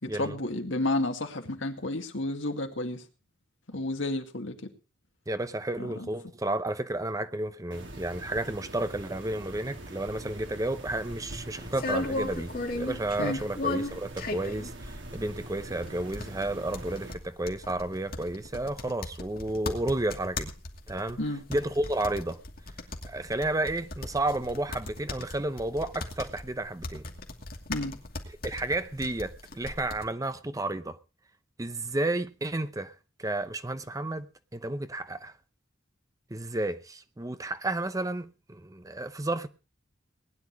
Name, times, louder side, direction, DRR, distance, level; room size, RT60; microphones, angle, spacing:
voice 1, 0.0-3.0 3.7-4.7 5.8-6.1 13.2-13.4 21.2-21.4 27.7-28.0, left 2 dB, 75° left, 2.2 m, -31 dB
voice 2, 5.3-20.5 20.9-21.2 21.5-22.4 23.0-27.1 28.4-31.0 31.6-35.3 36.3-39.5, right 2 dB, 20° right, 0.7 m, -32 dB
sound 1, 7.7-17.1, right 1 dB, 70° right, 3.4 m, -43 dB
sound 2, 11.1-30.1, left 2 dB, 50° left, 2.5 m, -37 dB
19.5 x 10.5 x 4.8 m
head